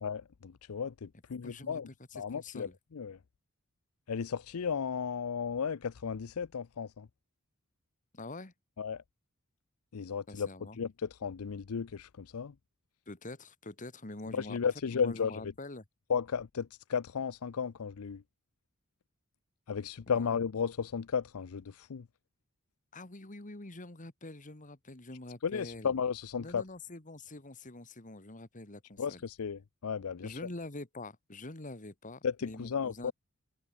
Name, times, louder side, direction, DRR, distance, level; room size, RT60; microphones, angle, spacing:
voice 1, 0.0-1.9 2.1-3.2 4.1-7.1 8.8-9.0 9.9-10.5 10.8-12.5 14.3-15.3 16.1-18.2 19.7-22.1 25.4-26.6 29.0-30.4 32.2-33.1, left 6 dB, 80° left, 0.5 m, -34 dB
voice 2, 1.4-2.8 8.1-8.5 10.3-10.8 13.1-14.6 14.9-15.8 20.1-20.3 22.9-25.9 26.4-29.2 30.2-33.1, left 2 dB, 35° left, 2.0 m, -45 dB
head